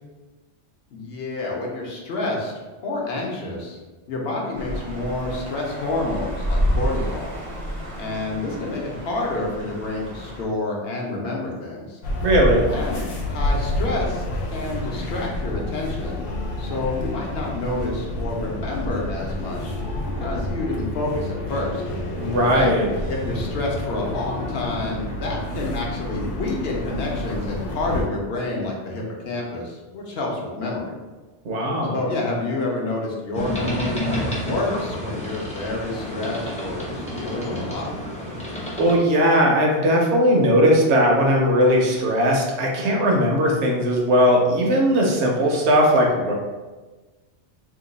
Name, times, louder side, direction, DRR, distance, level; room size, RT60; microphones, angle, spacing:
voice 1, 0.9-2.5 2.8-3.8 4.1-7.3 8.0-12.0 12.7-16.2 16.6-19.7 20.2-21.8 22.5-22.8 23.1-31.0 31.9-37.9, left 2 dB, 60° left, -1 dB, 0.9 m, -28 dB
sound 1, 4.5-10.4, equal, 35° right, 0.5 m, -29 dB
sound 2, 12.0-28.1, left 1 dB, 90° left, 1.0 m, -29 dB
voice 2, 12.2-12.6 22.2-22.9 31.4-32.0 38.8-46.3, equal, 70° right, -1 dB, 1.0 m, -18 dB
sound 3, 33.3-39.0, equal, 10° left, 0.6 m, -29 dB
2.9 x 2.3 x 3.9 m, 1.2 s
omnidirectional pair, 1.2 m